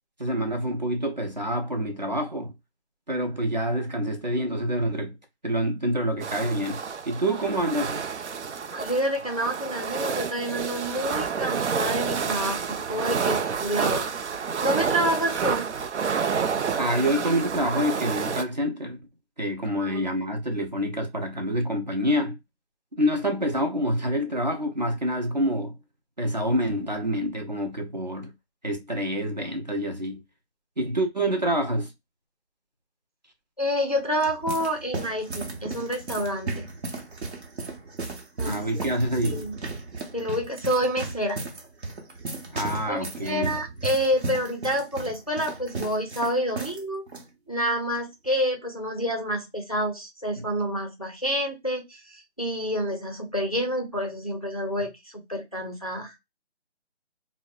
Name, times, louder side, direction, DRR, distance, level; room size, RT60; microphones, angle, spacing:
voice 1, 0.2-2.5 3.1-5.2 5.4-6.8 7.1-8.0 16.8-19.0 19.4-22.4 23.0-25.7 26.2-28.3 28.6-30.2 30.8-31.9 38.4-39.5 42.5-43.5, equal, 40° right, 0.5 m, -27 dB
sound 1, 6.2-18.4, right 6 dB, 85° right, 0.5 m, -29 dB
voice 2, 8.7-14.1 14.6-15.7 19.8-20.0 33.6-36.7 38.4-38.9 39.2-39.6 40.1-41.4 42.9-47.1 47.5-56.1, equal, 35° left, 0.4 m, -28 dB
sound 2, 33.9-46.8 47.1-47.2 48.0-48.3, right 3 dB, 70° right, 0.9 m, -35 dB
2.7 x 2.0 x 2.2 m
figure-of-eight pair, 165°, 34 cm